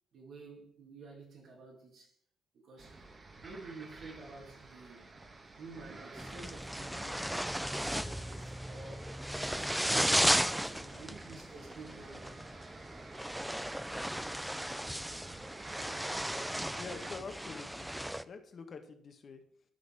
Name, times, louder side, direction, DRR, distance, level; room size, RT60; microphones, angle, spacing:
voice 1, 0.1-2.1 2.5-3.0 3.4-5.1 5.5-7.3 7.7-9.1 9.4-12.4, right 3 dB, 65° right, 2.5 m, -51 dB
sound 1, 2.8-17.1, right 3 dB, 35° right, 1.2 m, -51 dB
sound 2, 6.2-18.2, equal, 5° right, 0.3 m, -35 dB
sound 3, 6.8-10.7, left 5 dB, 65° left, 1.8 m, -60 dB
voice 2, 16.8-17.9 18.2-19.4, left 4 dB, 50° left, 1.2 m, -46 dB
11.5 x 4.0 x 4.8 m
cardioid pair, 90°, 0 cm